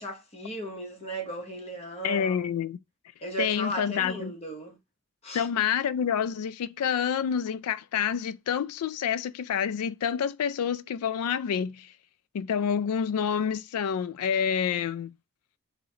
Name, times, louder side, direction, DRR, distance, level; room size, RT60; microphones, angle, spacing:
voice 1, 0.0-2.4 3.2-4.8 5.2-5.5, right 2 dB, 30° left, 0.9 m, -36 dB
voice 2, 2.0-2.8 3.4-4.3 5.3-11.9 12.3-15.1, left 7 dB, 90° left, 0.3 m, -28 dB
3.8 x 3.1 x 2.8 m
head